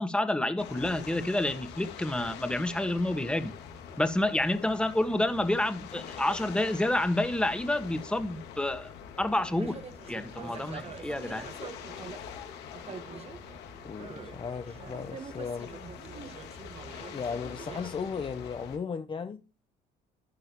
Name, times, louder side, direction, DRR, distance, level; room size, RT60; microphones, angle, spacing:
voice 1, 0.0-3.5 4.0-8.9 9.2-9.8 10.1-11.5, left 1 dB, 5° left, 1.5 m, -29 dB
sound 1, 0.6-18.8, left 7 dB, 85° left, 2.3 m, -45 dB
sound 2, 9.4-12.4 12.7-14.4 14.7-18.1, right 6 dB, 35° right, 1.3 m, -45 dB
voice 2, 13.8-15.7 17.1-19.4, left 6 dB, 30° left, 0.8 m, -36 dB
12.5 x 10.5 x 3.0 m
cardioid pair, 110°, 17 cm